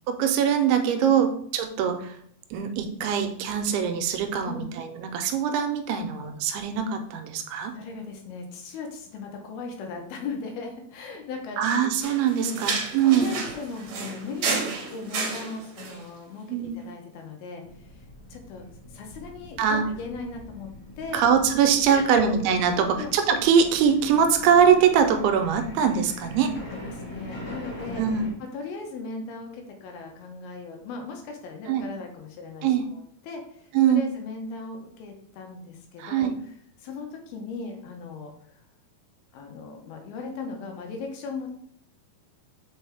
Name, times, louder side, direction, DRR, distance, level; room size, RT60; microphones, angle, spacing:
voice 1, 0.1-2.1 2.5-7.7 11.6-13.3 16.5-16.8 19.6-19.9 21.1-26.5 28.0-28.3 31.7-31.9 32.6-32.9 33.7-34.1 36.0-36.3, right 7 dB, 90° right, 6 dB, 2.6 m, -22 dB
voice 2, 4.4-4.8 7.7-11.6 12.4-12.6 13.0-18.0 18.3-18.7 18.9-20.7 21.0-21.2 21.9-22.3 22.7-23.1 26.7-28.0 28.4-36.3 36.8-38.3 39.3-41.6, left 4 dB, 85° left, 2 dB, 2.8 m, -38 dB
sound 1, 12.0-16.0, right 4 dB, 65° right, 2.2 m, -31 dB
sound 2, 17.6-28.3, left 1 dB, 40° left, 1.4 m, -42 dB
6.0 x 4.6 x 3.4 m, 0.67 s
omnidirectional pair, 4.4 m